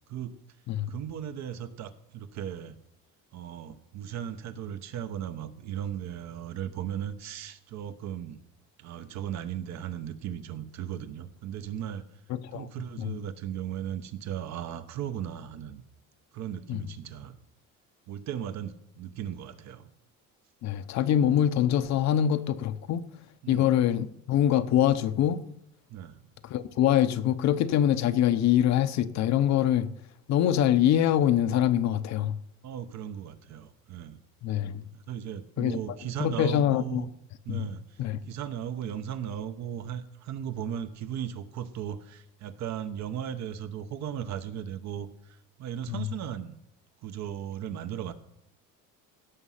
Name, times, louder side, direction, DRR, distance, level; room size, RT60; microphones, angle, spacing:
voice 1, 0.9-2.8 3.3-8.4 8.8-12.1 12.5-15.8 16.3-17.4 18.1-19.9 23.4-23.7 25.9-26.2 32.6-34.2 34.9-37.1 37.4-46.5 47.0-48.1, right 9 dB, 55° right, 1.0 m, -37 dB
voice 2, 12.3-12.7 13.0-13.1 16.7-16.8 20.6-23.1 23.5-25.4 26.4-29.9 30.3-32.4 34.4-34.8 35.6-35.8 36.2-37.0 37.5-37.6 38.0-38.2 45.9-46.1, left 10 dB, 60° left, 0.8 m, -24 dB
16.5 x 6.2 x 5.7 m
cardioid pair, 135°, 32 cm